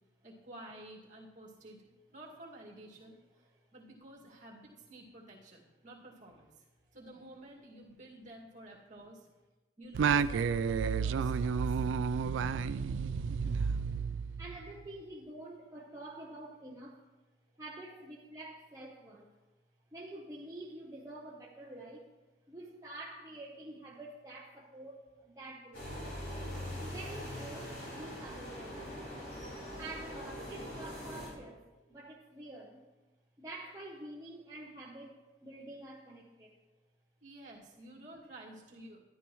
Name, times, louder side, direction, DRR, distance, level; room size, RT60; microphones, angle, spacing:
voice 1, 0.2-1.8 2.1-6.7 6.9-9.3 9.8-11.8 13.1-13.3 37.2-39.0, right 1 dB, 40° right, -3 dB, 2.2 m, -52 dB
Singing, 9.9-14.7, right 6 dB, 80° right, 0.3 m, -31 dB
voice 2, 14.4-17.1 17.6-19.3 19.9-22.1 22.5-26.0 26.7-28.8 29.8-32.8 33.4-36.6, right 1 dB, 15° right, -5 dB, 0.9 m, -47 dB
sound 1, 25.7-31.3, equal, 75° left, 4.3 m, -42 dB
13.0 x 11.0 x 3.1 m, 1.1 s
head